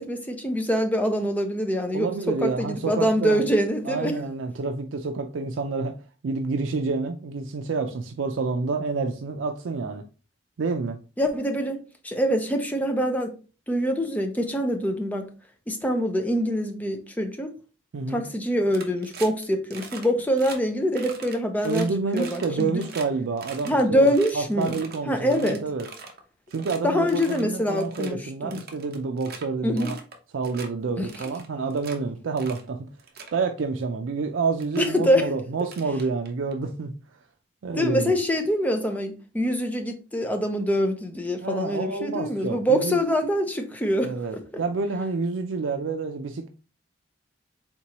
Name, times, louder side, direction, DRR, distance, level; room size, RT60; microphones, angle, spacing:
voice 1, 0.0-2.1 2.4-4.1 11.2-11.8 12.0-13.3 13.7-15.3 15.7-17.5 18.1-21.9 22.1-22.8 23.6-24.8 25.1-25.6 26.8-28.6 29.6-29.9 31.0-31.1 34.8-35.3 37.7-44.1, equal, 10° left, 0.6 m, -24 dB
voice 2, 1.9-3.4 3.9-6.0 6.2-10.0 10.6-11.0 17.9-18.2 21.6-25.9 26.5-30.0 30.3-32.9 33.3-37.0 37.6-38.1 41.4-43.0 44.0-46.5, right 4 dB, 90° right, 0.4 m, -28 dB
sound 1, 18.7-19.4 19.7-20.1 20.4-20.6 20.9-23.1 23.4-25.0 25.3-26.2 26.5-26.8 27.1-27.5 27.8-28.1 28.5-29.4 29.8-30.2 30.4-30.7 31.1-32.0 32.4-32.6 33.0-33.4 34.2-34.3 34.6-34.9 35.6-36.5, right 4 dB, 55° right, 0.8 m, -41 dB
4.4 x 3.6 x 2.9 m
head